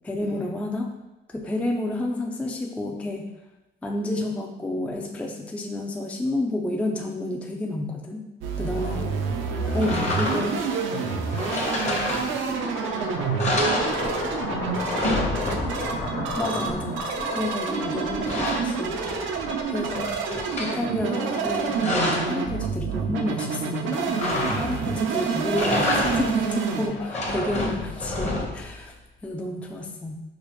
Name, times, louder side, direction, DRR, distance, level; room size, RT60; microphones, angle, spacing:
voice 1, 0.0-0.9 1.3-3.3 3.8-8.2 8.6-9.1 9.7-10.6 16.4-19.0 19.7-28.9 29.2-30.2, left 1 dB, 5° left, 2 dB, 0.3 m, -30 dB
sound 1, 8.4-26.9, right 5 dB, 75° right, 0.5 m, -28 dB
voice 2, 8.7-9.2 9.5-15.5 26.9-27.5, left 3 dB, 70° left, -4 dB, 1.0 m, -41 dB
sound 2, 9.8-10.7 11.4-12.6 13.0-13.1 13.4-14.4 14.7-16.0 17.7-19.4 19.8-20.8 21.4-22.4 24.2-25.0 25.4-26.5 26.9-28.7, left 1 dB, 35° left, 0.9 m, -28 dB
sound 3, 12.4-20.7, left 3 dB, 90° left, 0.8 m, -34 dB
4.8 x 2.0 x 3.0 m, 1.0 s
cardioid pair, 90°, 20 cm